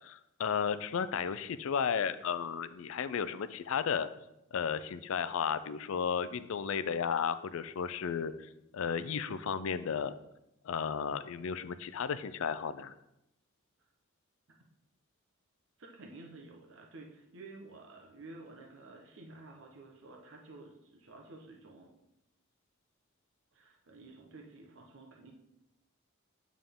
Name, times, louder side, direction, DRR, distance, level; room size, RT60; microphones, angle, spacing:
voice 1, 0.0-4.1 4.5-10.1 10.6-12.9, left 7 dB, 65° left, 13 dB, 0.4 m, -34 dB
voice 2, 15.8-21.9 23.5-25.3, right 2 dB, 60° right, 1 dB, 0.9 m, -51 dB
9.0 x 3.6 x 3.6 m, 0.85 s
head